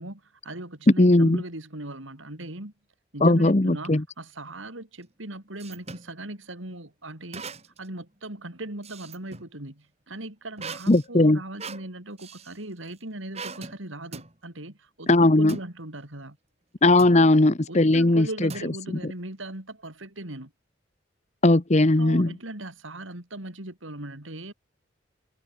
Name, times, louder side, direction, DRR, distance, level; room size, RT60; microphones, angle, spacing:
voice 1, 0.0-2.7 3.1-7.5 7.8-16.4 17.1-17.3 17.7-20.5 22.0-24.5, right 1 dB, 80° right, 4.2 m, -39 dB
voice 2, 1.0-1.4 3.2-4.0 10.9-11.4 15.1-15.6 16.8-18.5 19.0-19.1 21.4-22.3, left 2 dB, 35° left, 0.9 m, -18 dB
sound 1, 5.0-6.1 7.3-7.9 8.3-9.5 10.6-12.6 13.3-13.8 14.1-14.3 15.5-15.7 17.0-17.3 18.5-19.1, right 4 dB, 30° right, 3.1 m, -40 dB
head